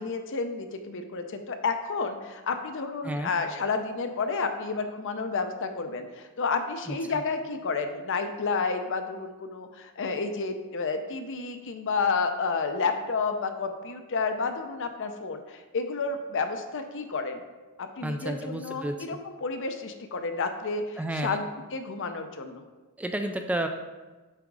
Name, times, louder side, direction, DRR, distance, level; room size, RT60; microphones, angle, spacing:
voice 1, 0.0-17.4 17.8-21.4 21.7-22.6, left 4 dB, 60° left, 7 dB, 0.6 m, -30 dB
voice 2, 6.9-7.2 18.0-19.2 21.0-21.4 23.0-23.7, right 1 dB, 5° right, 5 dB, 0.3 m, -31 dB
7.6 x 3.6 x 4.7 m, 1.2 s
head